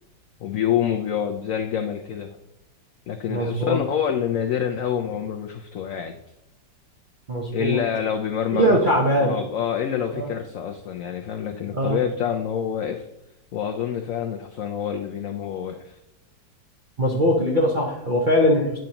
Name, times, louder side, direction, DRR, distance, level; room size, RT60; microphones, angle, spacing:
voice 1, 0.4-2.4 3.1-6.1 7.5-8.8 9.2-13.0 13.5-16.0, left 9 dB, 85° left, 4 dB, 0.7 m, -27 dB
voice 2, 3.3-3.8 7.3-7.8 8.5-9.4 10.1-10.3 11.7-12.0 17.0-18.8, equal, 45° right, -2 dB, 0.6 m, -21 dB
9.0 x 5.2 x 2.9 m, 0.88 s
omnidirectional pair, 2.0 m